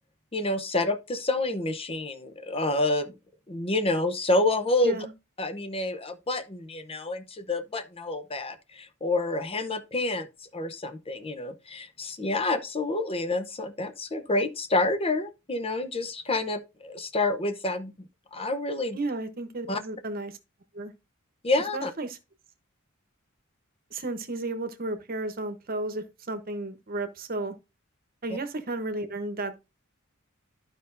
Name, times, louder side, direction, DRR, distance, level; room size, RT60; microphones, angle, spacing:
voice 1, 0.3-3.1 3.5-5.0 5.4-10.3 10.5-17.9 18.3-19.0 19.7-19.8 21.4-21.9, left 2 dB, 25° left, 0.8 m, -28 dB
voice 2, 18.9-20.4 20.7-20.9 21.7-22.2 23.9-27.5 28.2-29.5, right 2 dB, 45° right, 1.1 m, -33 dB
12.0 x 5.3 x 2.6 m
head